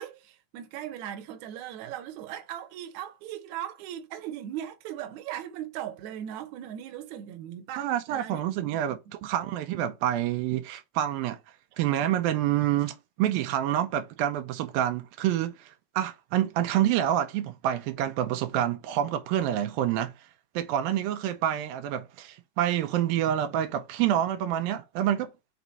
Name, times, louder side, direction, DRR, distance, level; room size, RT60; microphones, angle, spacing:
voice 1, 0.0-8.4, right 11 dB, 70° right, 2.0 m, -38 dB
voice 2, 7.8-11.4 11.8-20.1 20.6-25.3, right 11 dB, 85° right, 2.5 m, -27 dB
6.0 x 3.9 x 4.1 m
omnidirectional pair, 4.1 m